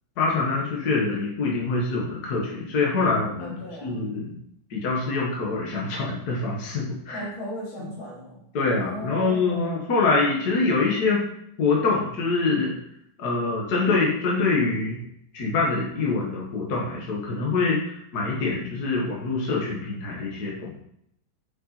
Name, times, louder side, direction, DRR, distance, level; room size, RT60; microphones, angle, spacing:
voice 1, 0.2-3.5 3.8-4.3 4.7-7.3 7.8-7.9 8.5-11.2 11.6-12.7 13.2-15.0 15.3-20.7, left 3 dB, 55° left, -2 dB, 1.9 m, -25 dB
voice 2, 3.4-4.0 7.1-8.4 8.7-9.7 17.5-17.7, equal, 85° left, -5 dB, 3.2 m, -37 dB
7.0 x 5.8 x 4.1 m, 0.73 s
omnidirectional pair, 2.1 m